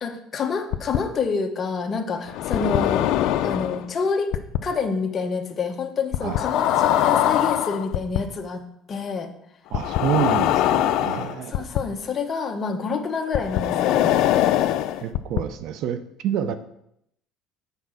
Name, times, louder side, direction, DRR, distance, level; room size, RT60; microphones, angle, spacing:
voice 1, 0.0-3.0 3.4-4.3 4.6-8.6 8.9-9.3 11.5-14.1, left 5 dB, 30° left, 4 dB, 1.0 m, -27 dB
sound 1, 0.7-1.0 2.3-3.8 4.3-4.6 6.1-8.2 9.7-11.8 13.3-15.4, left 12 dB, 65° left, 0.4 m, -22 dB
voice 2, 9.7-11.7 15.0-16.5, right 9 dB, 65° right, 11 dB, 0.5 m, -28 dB
8.2 x 4.6 x 6.2 m, 0.77 s
cardioid pair, 125°, 0 cm